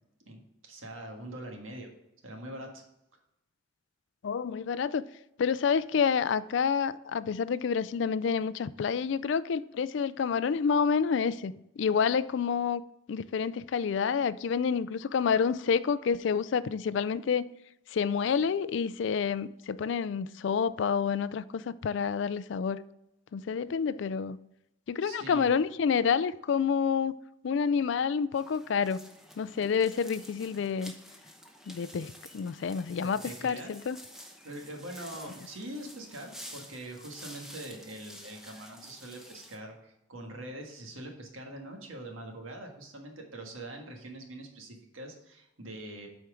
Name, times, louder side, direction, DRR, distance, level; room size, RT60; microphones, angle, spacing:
voice 1, 0.3-1.9 2.2-2.8 25.0-25.5 32.6-33.7 34.4-46.1, right 1 dB, 85° right, 1.7 m, -43 dB
voice 2, 4.2-5.0 5.4-12.8 13.1-17.5 17.9-22.8 23.3-24.4 24.9-27.2 27.4-29.0 29.4-30.9 31.7-34.0, left 6 dB, 65° left, 0.3 m, -28 dB
sound 1, 28.3-39.6, equal, ahead, 0.8 m, -50 dB
8.3 x 4.5 x 4.9 m
head